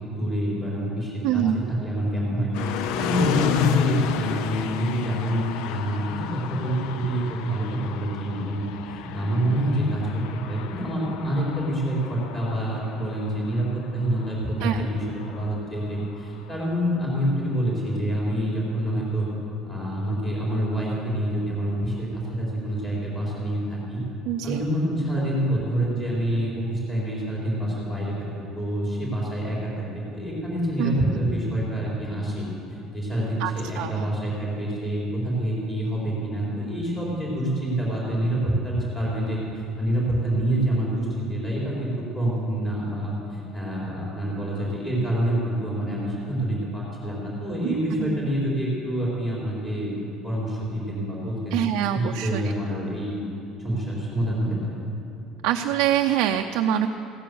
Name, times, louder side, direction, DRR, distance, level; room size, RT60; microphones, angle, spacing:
voice 1, 0.0-19.3 19.6-24.0 24.4-39.4 39.8-51.6 51.9-53.2 53.6-54.7, right 1 dB, 15° left, -6 dB, 4.2 m, -27 dB
voice 2, 1.2-1.7 14.6-14.9 24.3-24.6 30.8-31.0 33.4-34.0 47.6-47.7 48.0-48.1 51.5-52.4 55.4-56.9, right 11 dB, 65° right, 4 dB, 0.5 m, -25 dB
sound 1, 2.5-16.6, left 9 dB, 65° left, 0.5 m, -32 dB
16.0 x 9.4 x 7.0 m, 2.7 s
cardioid pair, 175°, 0 cm